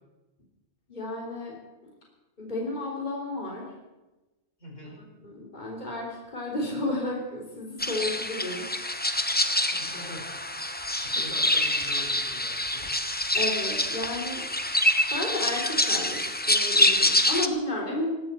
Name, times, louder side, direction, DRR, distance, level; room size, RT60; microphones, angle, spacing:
voice 1, 0.9-1.9 2.4-3.7 5.2-8.6 13.3-14.4 15.1-18.1, left 2 dB, 35° left, -3 dB, 3.6 m, -32 dB
voice 2, 4.6-5.0 9.6-10.3 11.0-13.2, left 1 dB, 75° left, -2 dB, 5.8 m, -43 dB
sound 1, 7.8-17.5, left 1 dB, 10° left, 0.8 m, -26 dB
19.5 x 16.5 x 4.4 m, 1.1 s
omnidirectional pair, 1.3 m